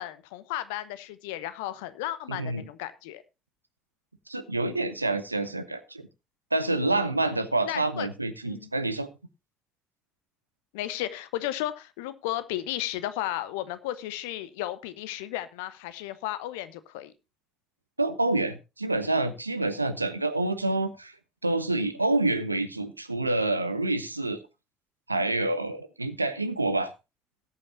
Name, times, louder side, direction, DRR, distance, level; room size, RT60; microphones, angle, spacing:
voice 1, 0.0-3.2 7.6-8.1 8.4-8.7 10.7-17.1, left 14 dB, 70° left, 0.9 m, -34 dB
voice 2, 2.3-2.7 4.3-6.1 6.5-9.1 18.0-21.1 21.4-24.4 25.1-26.9, right 2 dB, 90° right, 0.8 m, -27 dB
19.0 x 8.6 x 2.7 m
figure-of-eight pair, 50°, 0 cm